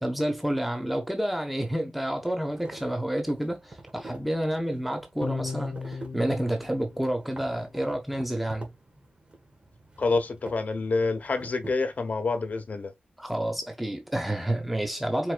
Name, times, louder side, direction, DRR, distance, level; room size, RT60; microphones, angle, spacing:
voice 1, 0.0-8.7 13.2-15.3, right 1 dB, ahead, 1.2 m, -29 dB
sound 1, 2.1-12.6, right 2 dB, 40° right, 2.4 m, -48 dB
sound 2, 5.2-7.8, left 5 dB, 70° left, 0.5 m, -37 dB
voice 2, 10.0-12.9, left 3 dB, 55° left, 1.1 m, -27 dB
4.8 x 4.1 x 2.4 m
wide cardioid pair, 120°, 3 cm